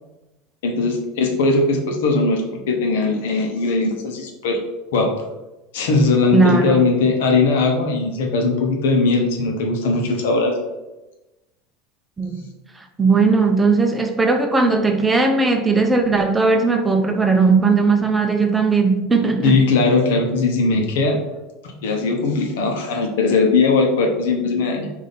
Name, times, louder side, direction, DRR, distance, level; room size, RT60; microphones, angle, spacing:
voice 1, 0.6-2.4 2.7-4.6 4.9-5.1 5.7-10.6 19.4-21.2 21.6-24.9, left 3 dB, 80° left, 0.8 m, -19 dB
voice 2, 6.3-6.8 12.2-12.5 13.0-19.6, right 4 dB, 15° right, 0.6 m, -17 dB
3.5 x 2.7 x 4.0 m
supercardioid pair, 105°, 0 cm